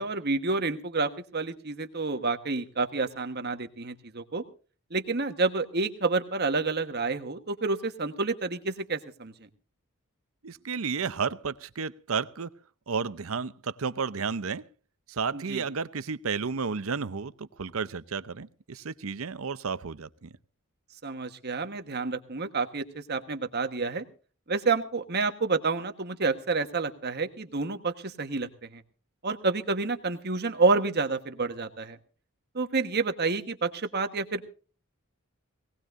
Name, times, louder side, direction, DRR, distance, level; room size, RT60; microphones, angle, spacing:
voice 1, 0.0-4.4 4.9-9.3 15.3-15.6 21.0-24.0 24.5-28.8 29.2-32.0 32.5-34.5, right 3 dB, 50° right, 8 dB, 1.4 m, -29 dB
voice 2, 10.4-12.5 12.9-14.6 15.1-20.3, right 5 dB, 70° right, 15 dB, 0.7 m, -32 dB
19.5 x 18.5 x 2.6 m, 0.38 s
head